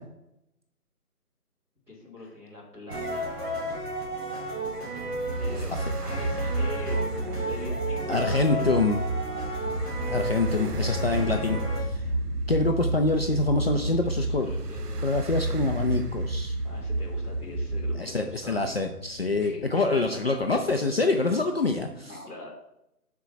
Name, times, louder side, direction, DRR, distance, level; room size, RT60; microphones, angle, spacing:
voice 1, 1.9-3.4 4.9-5.7 6.0-7.1 7.4-8.8 13.0-15.1 16.6-18.8 19.4-20.0 20.3-20.4 21.1-21.7 22.0-22.5, left 2 dB, 5° right, -8 dB, 1.4 m, -43 dB
sound 1, 2.9-11.8, right 1 dB, 40° right, 3.2 m, -33 dB
sound 2, 5.3-18.0, right 2 dB, 80° right, 0.8 m, -31 dB
voice 2, 8.1-9.0 10.1-12.0 12.5-14.5 15.0-16.5 18.0-22.1, left 3 dB, 40° left, 3 dB, 0.6 m, -25 dB
sound 3, 8.4-20.8, left 5 dB, 70° left, 0.9 m, -42 dB
6.2 x 4.7 x 5.7 m, 0.84 s
figure-of-eight pair, 155°, 47 cm